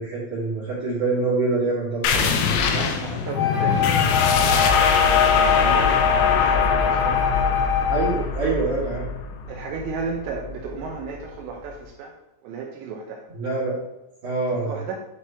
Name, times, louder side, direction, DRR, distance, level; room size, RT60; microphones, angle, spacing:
voice 1, 0.0-2.3 7.9-9.0 13.3-13.7 14.2-14.8, right 3 dB, 50° right, -10 dB, 3.0 m, -25 dB
sound 1, 2.0-11.3, left 5 dB, 90° left, 2.5 m, -22 dB
voice 2, 2.6-7.2 9.5-12.1 12.4-13.2 14.5-15.0, right 5 dB, 85° right, 0 dB, 2.5 m, -34 dB
Wind instrument woodwind instrument, 3.3-8.2, left 8 dB, 70° left, 0.8 m, -23 dB
10.0 x 4.6 x 2.9 m, 0.91 s
omnidirectional pair, 6.0 m